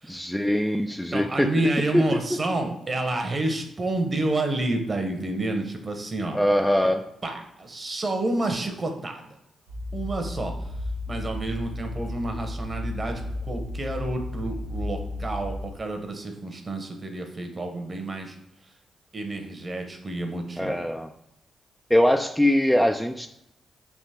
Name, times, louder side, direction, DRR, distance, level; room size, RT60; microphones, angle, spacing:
voice 1, 0.1-1.7 1.9-2.4 6.3-7.1 20.6-21.1 21.9-23.3, equal, 5° left, 6 dB, 0.3 m, -22 dB
voice 2, 1.1-6.9 7.2-9.3 9.9-10.7 11.1-18.4 19.1-20.9, right 2 dB, 40° right, 4 dB, 0.9 m, -29 dB
sound 1, 9.7-15.7, left 1 dB, 90° right, 0.5 m, -33 dB
3.6 x 2.8 x 4.2 m, 0.80 s
hypercardioid pair, 40°, 0 cm